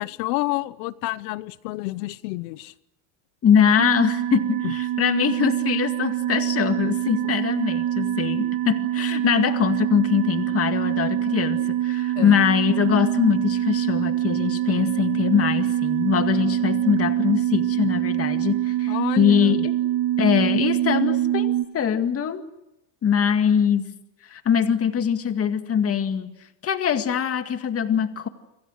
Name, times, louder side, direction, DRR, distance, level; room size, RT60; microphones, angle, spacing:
voice 1, 0.0-2.7 4.6-4.7 7.2-7.3 12.1-12.4 18.9-19.7, left 19 dB, 80° left, 16 dB, 1.1 m, -29 dB
voice 2, 3.4-19.8 20.2-22.4 23.0-23.9 24.3-26.3 26.6-28.3, left 8 dB, 30° left, 8 dB, 2.1 m, -22 dB
sound 1, 3.8-21.6, right 12 dB, 45° right, 2.0 m, -24 dB
30.0 x 27.0 x 6.5 m, 0.88 s
cardioid pair, 145°, 50 cm